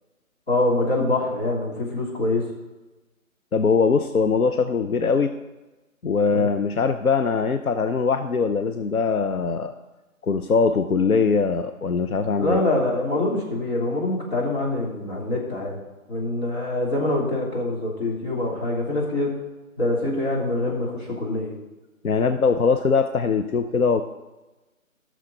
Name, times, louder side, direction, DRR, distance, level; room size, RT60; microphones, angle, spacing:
voice 1, 0.5-2.5 6.3-6.5 12.4-15.8 16.1-19.4 19.8-21.5, left 2 dB, 45° left, -3 dB, 3.1 m, -25 dB
voice 2, 3.5-5.3 6.0-9.7 10.2-12.6 22.0-24.0, left 5 dB, 90° left, 8 dB, 0.8 m, -21 dB
15.0 x 6.5 x 4.0 m, 1.1 s
figure-of-eight pair, 160°, 42 cm